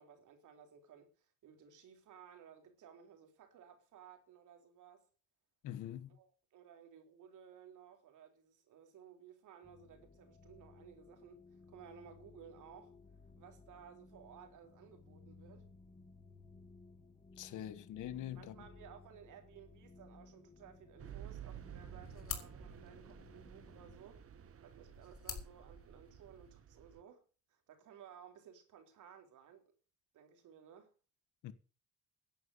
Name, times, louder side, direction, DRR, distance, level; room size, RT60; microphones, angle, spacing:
voice 1, 0.0-5.1 6.1-13.0 13.4-15.7 18.4-24.2 24.6-27.2 27.5-29.6 30.1-30.9, right 8 dB, 80° right, 3.8 m, -58 dB
voice 2, 5.6-6.2 17.4-18.6 31.4-31.5, left 11 dB, 85° left, 1.4 m, -44 dB
sound 1, 9.6-24.0, left 3 dB, 20° left, 1.2 m, -59 dB
sound 2, 21.0-27.0, right 9 dB, 50° right, 1.2 m, -53 dB
sound 3, 21.5-26.5, left 6 dB, 50° left, 3.2 m, -50 dB
11.0 x 8.0 x 8.2 m
cardioid pair, 90°, 30 cm